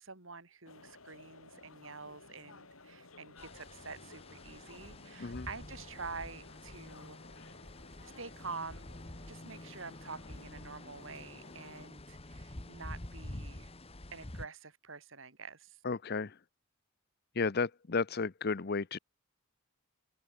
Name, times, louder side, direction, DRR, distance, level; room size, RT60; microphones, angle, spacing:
voice 1, 0.0-7.2 8.0-8.9 9.3-13.7 14.1-15.8, right 4 dB, 65° right, 2.9 m, -47 dB
sound 1, 0.7-11.9, left 3 dB, 75° left, 5.8 m, -56 dB
sound 2, 3.4-14.5, left 1 dB, 30° left, 1.7 m, -48 dB
voice 2, 15.8-16.3 17.4-19.0, left 4 dB, 50° left, 0.7 m, -33 dB
open air
head